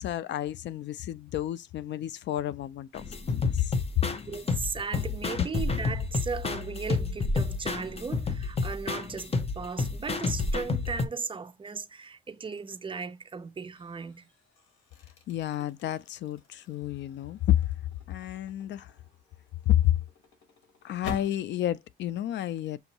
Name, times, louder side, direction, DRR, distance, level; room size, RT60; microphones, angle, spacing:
voice 1, 0.0-4.0 15.3-17.7 18.1-18.9 19.7-19.9 20.8-22.8, left 13 dB, 65° left, 0.4 m, -30 dB
sound 1, 2.9-11.1, left 3 dB, 30° left, 0.7 m, -30 dB
voice 2, 4.3-14.3, right 5 dB, 25° right, 0.5 m, -37 dB
sound 2, 12.6-12.9 13.4-21.5, left 5 dB, 85° left, 1.1 m, -46 dB
6.8 x 2.6 x 2.9 m
cardioid pair, 90°, 20 cm